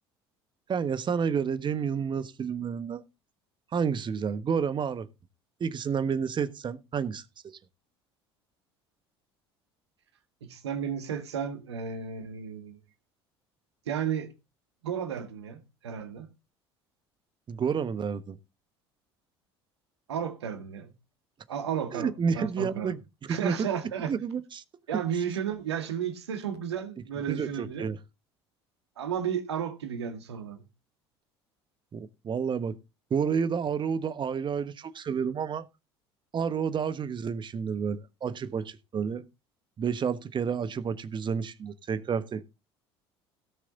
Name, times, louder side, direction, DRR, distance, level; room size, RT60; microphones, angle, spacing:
voice 1, 0.7-3.0 3.7-5.1 5.6-7.6 17.5-18.4 21.9-23.7 24.1-24.6 27.3-28.0 31.9-32.7 33.1-35.7 36.3-39.3 39.8-42.4, right 6 dB, 35° right, 1.2 m, -30 dB
voice 2, 10.4-12.8 13.9-14.3 14.8-16.3 20.1-20.9 21.5-22.9 23.3-24.1 24.9-27.8 29.0-30.6, right 8 dB, 80° right, 2.0 m, -33 dB
17.0 x 6.5 x 4.0 m
hypercardioid pair, 65°, 14 cm